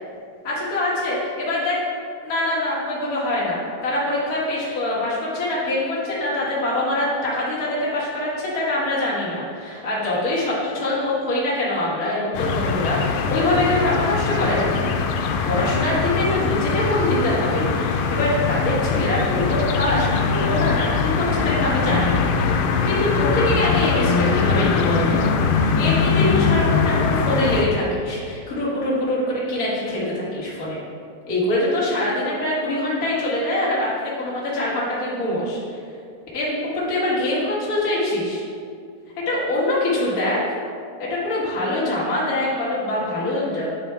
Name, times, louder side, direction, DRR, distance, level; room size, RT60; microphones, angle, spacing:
voice 1, 0.4-1.8 2.2-14.9 15.2-25.2 25.6-30.8 31.3-35.8 36.3-38.4 39.2-40.4 41.0-43.7, left 1 dB, 40° left, -7 dB, 1.4 m, -24 dB
sound 1, 12.3-27.6, left 5 dB, 90° left, 2.3 m, -21 dB
9.1 x 4.3 x 3.4 m, 2.3 s
omnidirectional pair, 3.9 m